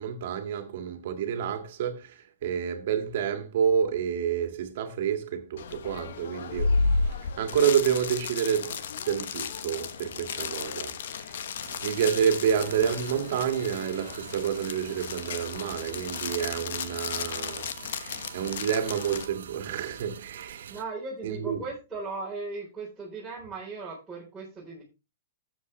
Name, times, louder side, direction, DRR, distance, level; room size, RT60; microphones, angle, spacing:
voice 1, 0.0-8.8 9.1-11.3 11.8-20.7 21.2-21.6, right 8 dB, 60° right, 2.1 m, -29 dB
sound 1, 5.6-19.3, left 4 dB, 70° left, 1.2 m, -33 dB
sound 2, 11.6-20.8, right 8 dB, 85° right, 1.1 m, -45 dB
voice 2, 20.7-24.8, right 3 dB, 5° right, 4.0 m, -37 dB
12.5 x 7.9 x 3.2 m
hypercardioid pair, 150°, 0 cm